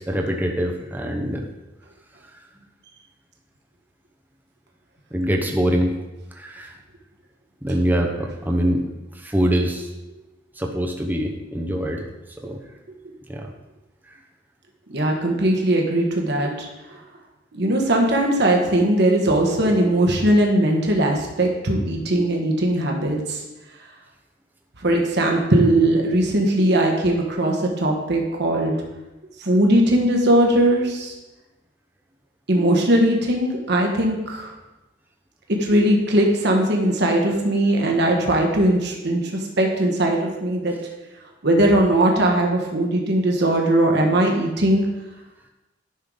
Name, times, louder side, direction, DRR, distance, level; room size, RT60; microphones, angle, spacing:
voice 1, 0.0-1.4 5.1-6.0 6.4-6.7 7.6-8.8 9.2-9.9 10.6-12.0 12.4-12.6 13.3-13.5, equal, 10° right, 1 dB, 0.9 m, -23 dB
voice 2, 14.9-16.7 17.5-23.4 24.8-28.7 29.4-31.1 32.5-34.5 35.6-40.8 41.4-44.9, right 1 dB, 60° right, 1 dB, 1.3 m, -19 dB
10.5 x 5.6 x 3.8 m, 1.1 s
head